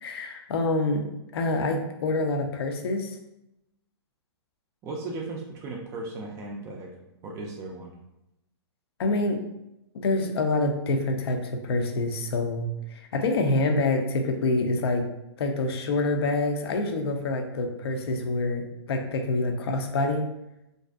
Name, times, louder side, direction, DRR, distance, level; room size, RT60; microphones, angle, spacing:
voice 1, 0.0-3.1 9.0-9.4 9.9-15.1 15.4-20.3, left 2 dB, 65° left, 4 dB, 0.5 m, -26 dB
voice 2, 4.8-7.0 7.2-7.9, right 2 dB, 20° right, 0 dB, 0.3 m, -36 dB
2.5 x 2.3 x 2.3 m, 0.88 s
hypercardioid pair, 130°, 14 cm